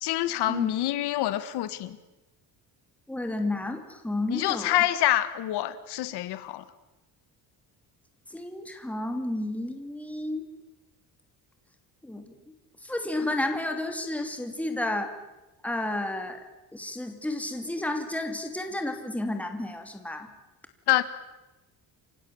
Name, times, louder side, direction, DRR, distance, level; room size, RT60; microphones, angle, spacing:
voice 1, 0.0-2.0 4.3-6.6 20.9-21.0, left 14 dB, 80° left, 12 dB, 1.8 m, -26 dB
voice 2, 3.1-4.8 8.3-10.4 12.0-12.2 12.8-15.1 15.6-16.4 16.7-20.3, left 1 dB, 5° left, 5 dB, 2.7 m, -31 dB
29.0 x 25.0 x 7.2 m, 1.0 s
cardioid pair, 170°, 39 cm